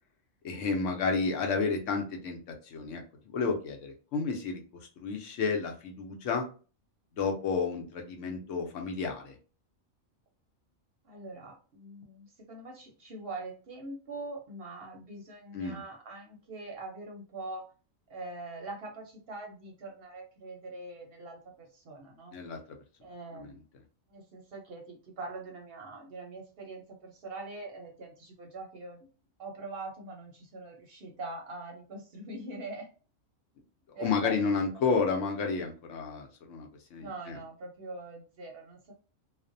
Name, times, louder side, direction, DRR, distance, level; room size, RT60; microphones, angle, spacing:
voice 1, 0.4-3.0 3.3-4.6 5.0-6.5 7.2-9.3 15.5-15.8 22.3-22.6 23.4-23.5 34.0-37.4, left 4 dB, 70° left, 3 dB, 0.9 m, -31 dB
voice 2, 11.0-17.7 18.1-22.4 23.0-23.6 24.1-29.1 29.4-32.9 33.9-34.9 37.0-38.9, right 2 dB, 55° right, 0 dB, 0.7 m, -43 dB
2.4 x 2.1 x 2.5 m, 0.36 s
omnidirectional pair, 1.4 m